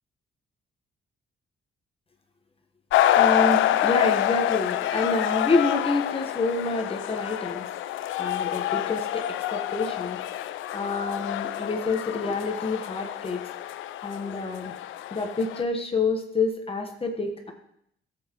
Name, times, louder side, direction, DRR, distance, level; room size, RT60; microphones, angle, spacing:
sound 1, 2.9-15.6, left 12 dB, 75° left, 0.4 m, -27 dB
voice 1, 3.0-13.4 14.0-14.7 15.1-17.5, left 3 dB, 30° left, 4 dB, 1.2 m, -28 dB
13.0 x 8.0 x 3.0 m, 0.75 s
cardioid pair, 90°, 20 cm